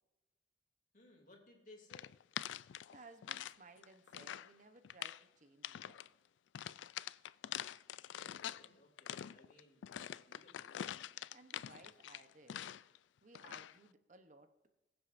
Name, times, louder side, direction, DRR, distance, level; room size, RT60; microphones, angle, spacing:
voice 1, 0.9-2.1 8.1-10.8, left 1 dB, 45° left, 1 dB, 2.8 m, -62 dB
sound 1, 1.9-3.6 3.8-4.5 4.8-5.2 5.6-6.1 6.5-8.7 9.0-13.0 13.3-13.8, left 10 dB, 85° left, 0.3 m, -45 dB
voice 2, 2.9-6.2 11.3-12.8 13.2-14.7, right 2 dB, 45° right, 8 dB, 0.9 m, -60 dB
22.0 x 7.8 x 2.6 m, 1.0 s
head